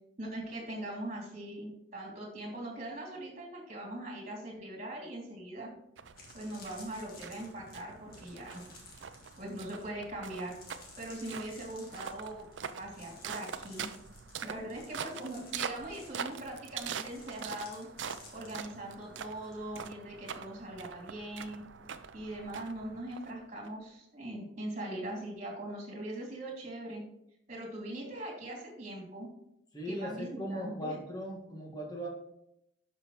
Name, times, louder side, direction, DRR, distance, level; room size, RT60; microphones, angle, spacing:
voice 1, 0.2-5.7 6.3-8.6 9.4-10.5 11.0-12.5 12.8-13.9 14.4-17.9 18.3-21.6 22.1-27.0 27.5-29.3 29.9-31.0, right 1 dB, 40° right, -1 dB, 2.7 m, -41 dB
sound 1, 5.5-5.6 6.0-19.6 19.8-20.2, left 3 dB, 50° left, 2.0 m, -55 dB
sound 2, 6.0-23.7, right 7 dB, 80° right, 0.5 m, -44 dB
voice 2, 29.7-32.1, equal, 20° left, -1 dB, 1.9 m, -39 dB
11.0 x 5.8 x 3.1 m, 0.79 s
head